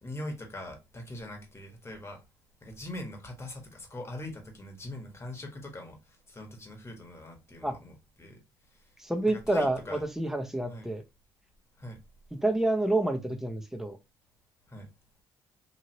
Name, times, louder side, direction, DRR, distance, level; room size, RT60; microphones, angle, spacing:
voice 1, 0.0-2.2 2.6-6.0 6.3-8.4 9.3-10.0 10.7-10.9 11.8-12.0 14.7-14.9, left 1 dB, 30° left, 1.3 m, -42 dB
voice 2, 9.0-11.0 12.3-14.0, right 1 dB, 5° right, 0.8 m, -28 dB
3.1 x 2.7 x 2.8 m
supercardioid pair, 65°, 9 cm